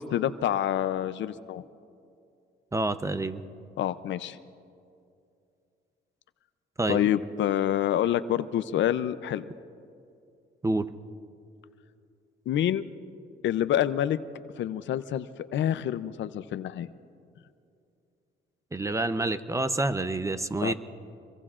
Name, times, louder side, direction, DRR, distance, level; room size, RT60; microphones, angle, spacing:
voice 1, 0.0-1.6 3.8-4.4 6.9-9.4 12.5-12.8 13.4-14.2 14.6-15.3 15.5-16.9 20.6-20.7, left 11 dB, 70° left, 14 dB, 0.6 m, -27 dB
voice 2, 2.7-3.4 6.8-7.1 10.6-10.9 18.7-20.7, right 2 dB, 15° right, 12 dB, 0.6 m, -28 dB
26.0 x 22.5 x 2.5 m, 2.5 s
cardioid pair, 90°, 20 cm